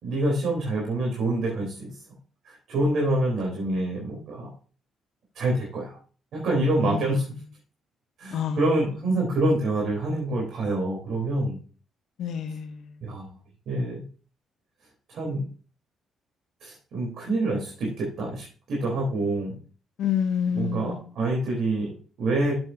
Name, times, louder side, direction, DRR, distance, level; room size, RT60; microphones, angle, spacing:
voice 1, 0.0-1.9 2.5-4.5 5.4-6.0 6.3-7.2 8.2-11.6 13.0-13.3 13.7-14.0 15.1-15.5 16.6-19.6 20.5-22.5, right 2 dB, 70° right, -2 dB, 3.7 m, -26 dB
voice 2, 6.8-7.2 8.3-8.7 12.2-12.9 20.0-21.0, left 8 dB, 75° left, 7 dB, 0.7 m, -28 dB
8.8 x 7.9 x 2.7 m, 0.38 s
cardioid pair, 90°, 0 cm